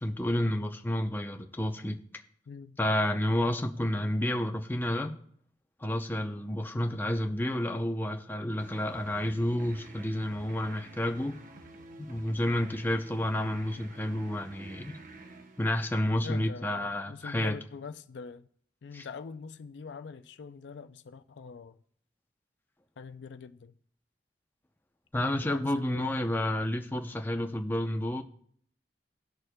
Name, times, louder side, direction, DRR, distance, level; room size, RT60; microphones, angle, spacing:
voice 1, 0.0-2.0 2.8-5.1 5.8-11.4 12.0-15.0 15.6-17.6 18.9-19.1 25.1-28.2, left 1 dB, 10° left, 0.6 m, -30 dB
voice 2, 2.5-2.8 16.2-18.5 18.8-21.8 23.0-23.7 25.3-26.3, left 5 dB, 85° left, 0.5 m, -44 dB
sound 1, 8.6-16.3, right 2 dB, 50° right, 0.7 m, -50 dB
19.0 x 6.4 x 2.3 m
head